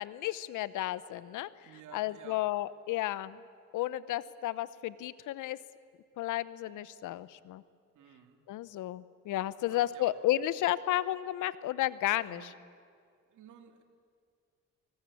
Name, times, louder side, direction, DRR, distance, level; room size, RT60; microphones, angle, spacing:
voice 1, 0.0-1.5 1.9-3.4 3.7-5.6 6.2-7.6 8.5-12.4, left 14 dB, 85° left, 17 dB, 0.8 m, -32 dB
voice 2, 1.6-2.4 7.9-8.4 9.6-10.2 12.2-12.6 13.3-13.8, right 9 dB, 80° right, 6 dB, 2.5 m, -53 dB
25.0 x 20.0 x 8.4 m, 2.2 s
cardioid pair, 90°, 30 cm